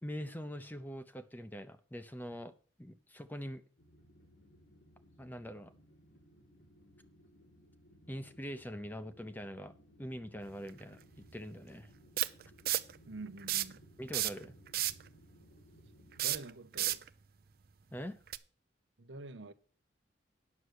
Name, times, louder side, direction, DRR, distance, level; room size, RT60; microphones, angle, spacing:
voice 1, 0.0-2.5 2.8-3.6 5.2-5.7 8.1-9.7 10.0-11.9 14.0-14.5 17.9-18.2, equal, 10° left, 0.7 m, -43 dB
sound 1, 3.8-16.3, equal, 75° left, 2.9 m, -62 dB
sound 2, 10.7-10.8 12.2-13.0 13.4-13.8 14.1-15.1 16.1-17.1 18.3-18.4, right 14 dB, 55° right, 0.5 m, -32 dB
voice 2, 13.1-13.9 16.2-17.0 19.0-19.5, right 3 dB, 85° right, 0.9 m, -47 dB
9.5 x 6.6 x 6.3 m
head